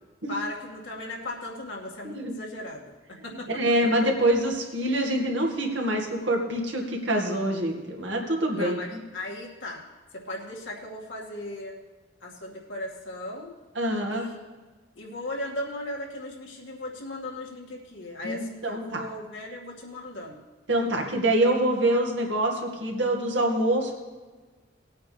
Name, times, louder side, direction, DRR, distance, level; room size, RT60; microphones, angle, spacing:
voice 1, 0.3-2.8 3.1-3.5 8.5-9.8 10.1-11.8 12.2-13.5 14.1-14.4 15.0-20.4, left 1 dB, 85° left, -2 dB, 2.3 m, -37 dB
voice 2, 3.5-9.0 13.8-14.3 18.2-19.0 20.7-23.9, right 1 dB, 70° right, 0 dB, 2.1 m, -25 dB
19.5 x 8.8 x 3.4 m, 1.3 s
head